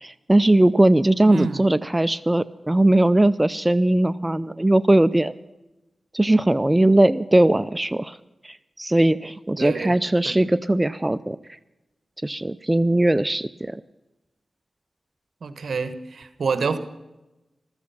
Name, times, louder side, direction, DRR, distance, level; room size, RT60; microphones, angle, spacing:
voice 1, 0.0-5.3 6.1-8.2 8.4-11.4 12.2-13.8, right 1 dB, 20° right, 14 dB, 0.5 m, -19 dB
voice 2, 1.3-1.7 9.6-9.9 10.2-10.4 15.4-16.8, right 5 dB, 75° right, 11 dB, 1.3 m, -27 dB
15.0 x 13.5 x 5.7 m, 1.0 s
cardioid pair, 55°, 0 cm